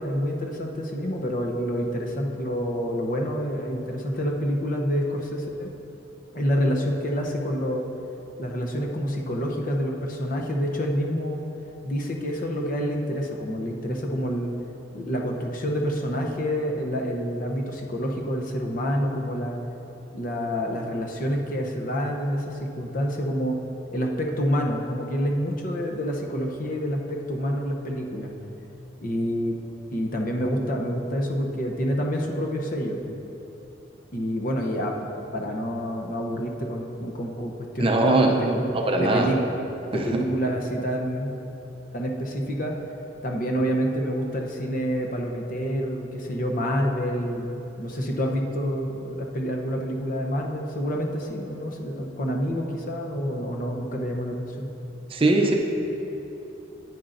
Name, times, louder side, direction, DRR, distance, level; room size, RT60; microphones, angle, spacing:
voice 1, 0.0-5.7 6.3-7.8 8.4-11.4 11.8-14.5 14.9-19.6 20.1-23.6 23.9-28.3 29.0-29.6 29.9-33.2 34.1-34.9 35.3-38.7 39.0-39.4 39.9-41.4 41.9-42.7 43.2-54.7, equal, 45° left, 1 dB, 0.8 m, -27 dB
voice 2, 37.8-38.4 38.7-39.3 39.9-40.2 55.1-55.6, right 2 dB, 30° right, 2 dB, 0.5 m, -21 dB
9.8 x 9.3 x 2.6 m, 3.0 s
head